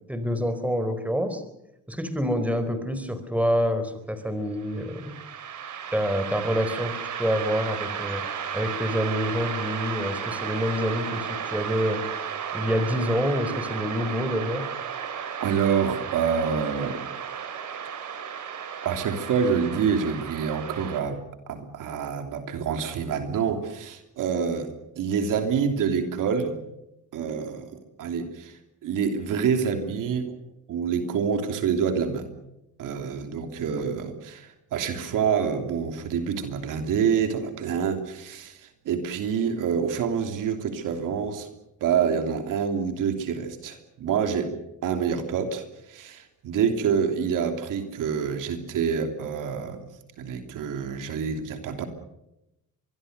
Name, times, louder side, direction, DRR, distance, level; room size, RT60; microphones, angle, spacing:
voice 1, 0.1-1.4 1.9-5.2 5.9-8.2 8.5-12.0 12.5-14.7, equal, 5° right, 10 dB, 4.5 m, -27 dB
sound 1, 4.6-21.0, right 8 dB, 70° right, 4.2 m, -34 dB
voice 2, 15.4-17.0 18.8-26.6 27.1-28.6 28.8-30.4 30.7-32.3 32.8-41.5 41.8-44.5 44.8-49.8 50.2-51.9, right 7 dB, 90° right, 6 dB, 3.1 m, -27 dB
24.5 x 22.0 x 6.7 m, 0.88 s
cardioid pair, 90°, 31 cm